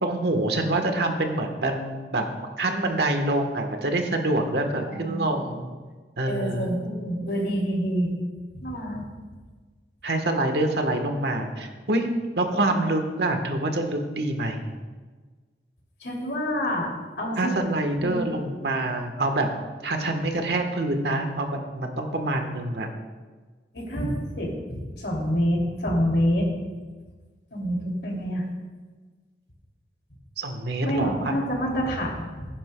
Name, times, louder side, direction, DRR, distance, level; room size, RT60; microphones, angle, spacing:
voice 1, 0.0-2.2 2.6-5.7 6.2-6.7 10.0-12.1 12.4-14.8 17.4-19.5 19.8-22.9 30.4-31.4, right 2 dB, 70° right, 5 dB, 1.3 m, -26 dB
voice 2, 4.9-5.3 6.3-8.1 8.6-9.0 16.0-16.9 17.2-17.5 18.0-18.2 23.7-26.5 27.5-28.4 30.8-32.5, equal, 75° left, -1 dB, 2.7 m, -27 dB
16.0 x 10.5 x 2.3 m, 1.4 s
head